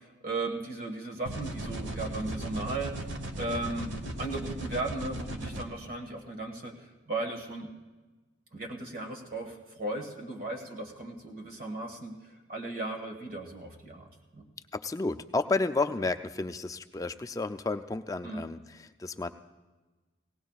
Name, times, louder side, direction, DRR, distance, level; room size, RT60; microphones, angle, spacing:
voice 1, 0.0-3.1 3.4-7.7 8.5-14.5 18.2-18.4, right 2 dB, 50° right, 2 dB, 1.5 m, -36 dB
sound 1, 1.3-5.6, right 1 dB, 85° right, 1.1 m, -37 dB
voice 2, 14.7-19.3, left 3 dB, 20° left, 9 dB, 0.3 m, -31 dB
18.5 x 18.0 x 2.4 m, 1.2 s
head